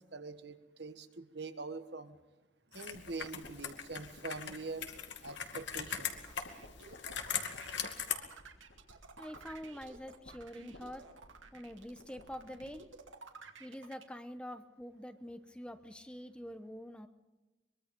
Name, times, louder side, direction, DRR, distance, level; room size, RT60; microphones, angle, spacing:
voice 1, 0.0-2.2 2.7-4.9 5.2-6.1, right 3 dB, 60° right, 9 dB, 1.5 m, -44 dB
Computer keyboard, 2.7-8.2, left 8 dB, 70° left, 2.3 m, -40 dB
sound 1, 2.9-13.0, left 1 dB, 85° left, 4.7 m, -58 dB
sound 2, 4.9-14.0, right 4 dB, 85° right, 2.3 m, -54 dB
voice 2, 9.2-11.1 11.5-12.8 13.6-17.1, equal, 5° left, 9 dB, 0.9 m, -46 dB
23.5 x 23.0 x 5.3 m, 1.1 s
head